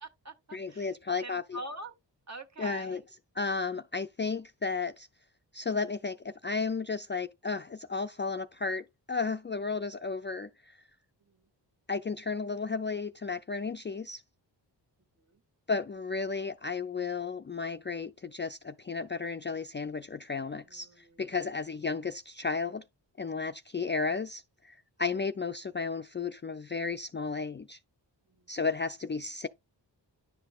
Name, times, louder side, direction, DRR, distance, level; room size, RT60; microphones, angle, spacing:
voice 1, 0.0-0.9 1.2-2.0 2.3-3.0 11.3-11.4 15.3-15.4 20.6-21.4 28.3-28.5, right 1 dB, 40° right, 1.6 m, -45 dB
voice 2, 0.5-1.6 2.6-3.0 3.3-5.1 5.5-10.8 11.9-14.2 15.7-22.8 23.2-27.8 28.5-29.5, left 4 dB, 25° left, 0.4 m, -33 dB
10.5 x 5.7 x 2.3 m
cardioid pair, 75°, 44 cm